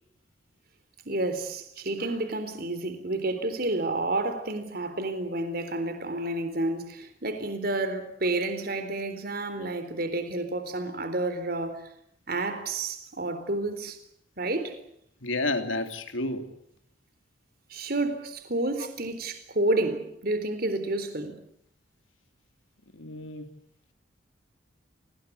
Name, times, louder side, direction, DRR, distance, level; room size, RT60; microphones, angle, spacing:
voice 1, 1.1-11.9 12.3-14.0 14.4-14.8 17.7-21.4, right 2 dB, 50° right, 3.8 m, -30 dB
voice 2, 15.2-16.5 22.9-23.5, left 2 dB, 90° left, 3.1 m, -30 dB
28.5 x 20.5 x 8.1 m
head